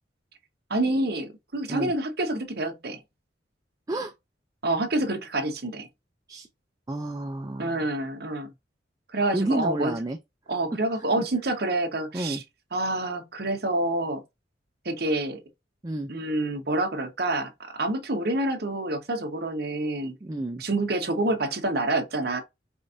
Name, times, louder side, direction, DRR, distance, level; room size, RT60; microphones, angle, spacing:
voice 1, 0.7-3.0 4.6-5.9 7.6-8.5 9.1-9.9 10.5-12.4 12.7-14.2 14.8-15.4 16.1-20.2 20.6-22.4, right 2 dB, 60° right, 1.1 m, -27 dB
voice 2, 6.9-7.9 9.3-10.2 10.9-11.3 12.1-12.4 15.8-16.1 20.2-20.6, right 2 dB, 20° right, 0.4 m, -30 dB
4.9 x 2.6 x 2.6 m
head